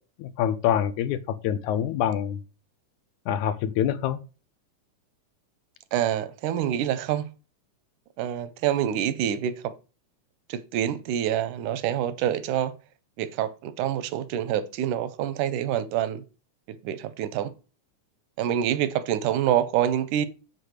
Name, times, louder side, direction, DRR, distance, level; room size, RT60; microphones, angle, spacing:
voice 1, 0.2-2.4 3.3-4.2, left 10 dB, 80° left, 2.2 m, -26 dB
voice 2, 5.9-7.3 8.2-9.7 10.5-12.7 13.2-16.2 16.9-17.5 18.4-20.3, right 10 dB, 90° right, 2.3 m, -26 dB
8.5 x 4.2 x 6.5 m
omnidirectional pair, 3.5 m